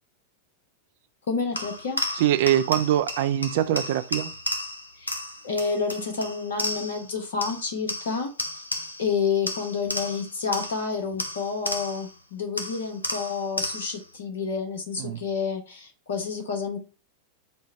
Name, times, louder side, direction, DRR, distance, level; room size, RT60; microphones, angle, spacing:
voice 1, 1.3-2.0 5.0-5.1 5.4-8.3 9.0-16.8, left 5 dB, 60° left, 1.1 m, -29 dB
sound 1, 1.5-7.1 7.4-9.1 9.5-12.1 12.6-14.1, left 1 dB, 80° left, 0.5 m, -33 dB
voice 2, 2.2-4.3 15.0-15.2, right 12 dB, 50° right, 0.4 m, -23 dB
4.2 x 2.2 x 4.5 m
figure-of-eight pair, 90°, 0 cm